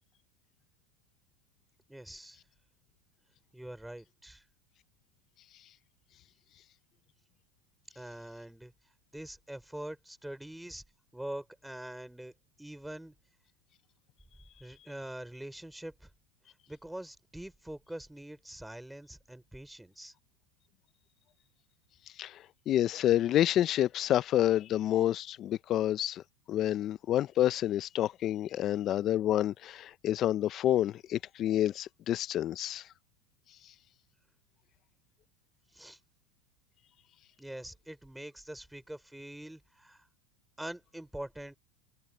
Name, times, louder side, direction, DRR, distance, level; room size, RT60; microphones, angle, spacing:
voice 1, 1.9-2.4 3.5-4.4 7.9-8.7 9.1-10.8 11.1-12.3 12.6-13.1 14.6-16.1 16.7-20.1 35.7-36.0 37.4-40.1 40.6-41.6, right 1 dB, 5° right, 4.4 m, -44 dB
voice 2, 22.2-32.8, left 12 dB, 40° left, 0.6 m, -28 dB
supercardioid pair, 115°, 0 cm